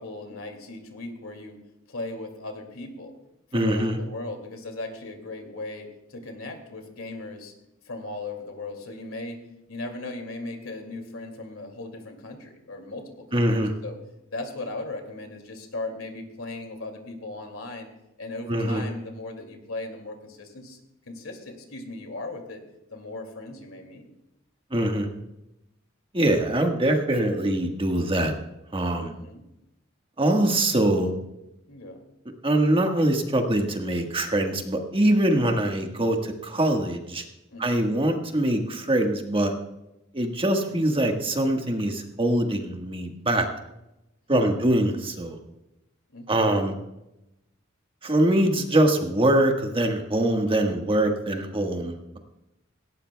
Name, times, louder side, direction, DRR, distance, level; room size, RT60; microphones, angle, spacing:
voice 1, 0.0-1.6 1.9-3.1 3.5-7.5 7.8-9.4 9.7-14.0 14.3-17.9 18.2-20.8 21.1-22.6 22.9-24.1 29.0-29.5 31.7-32.0 37.5-38.0 44.3-44.7 46.1-46.7, left 2 dB, 80° left, 4 dB, 2.4 m, -37 dB
voice 2, 3.5-4.0 13.3-13.7 18.5-18.8 24.7-25.1 26.1-28.3 28.7-29.1 30.2-31.1 32.4-37.2 37.6-39.5 40.1-43.5 44.3-45.4 46.3-46.7 48.0-52.2, right 1 dB, 25° right, 3 dB, 1.5 m, -23 dB
18.5 x 17.0 x 2.3 m, 0.90 s
head